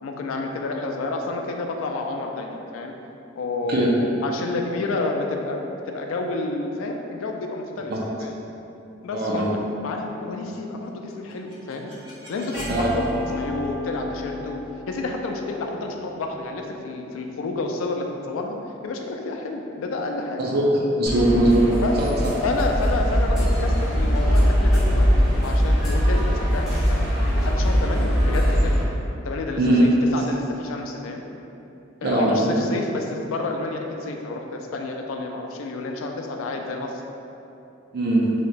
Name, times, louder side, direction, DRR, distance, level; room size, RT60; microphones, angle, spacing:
voice 1, 0.0-2.9 3.4-7.9 8.2-8.4 9.0-9.5 9.8-11.9 12.3-13.1 13.3-18.6 18.8-20.4 21.8-22.0 22.4-25.1 25.4-27.1 27.3-28.8 29.2-31.2 32.0-37.0, left 3 dB, 75° left, 2 dB, 0.3 m, -29 dB
voice 2, 9.1-9.5 12.7-12.9 20.4-20.7 20.9-21.7 22.0-22.1 29.6-29.9 32.0-32.6 37.9-38.3, right 1 dB, 45° right, -4 dB, 0.4 m, -20 dB
sound 1, 11.1-17.0, left 1 dB, 75° right, 1.4 m, -35 dB
sound 2, 21.1-28.8, equal, ahead, 0.8 m, -21 dB
2.8 x 2.2 x 4.0 m, 2.8 s
head